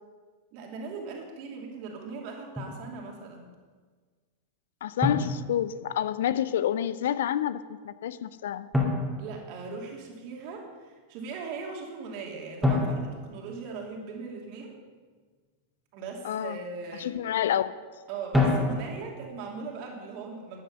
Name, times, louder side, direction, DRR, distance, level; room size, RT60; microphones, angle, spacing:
voice 1, 0.5-3.5 9.2-14.7 15.9-17.1 18.1-20.6, right 4 dB, 45° right, 1 dB, 2.8 m, -39 dB
Drum, 2.6-2.8 5.0-6.2 8.7-10.1 12.6-14.3 18.3-19.3, left 2 dB, ahead, 2.6 m, -29 dB
voice 2, 4.8-7.6 7.8-8.7 16.2-16.6 17.0-17.7, left 10 dB, 60° left, 15 dB, 0.5 m, -28 dB
13.0 x 11.0 x 5.4 m, 1.5 s
figure-of-eight pair, 90°, 0 cm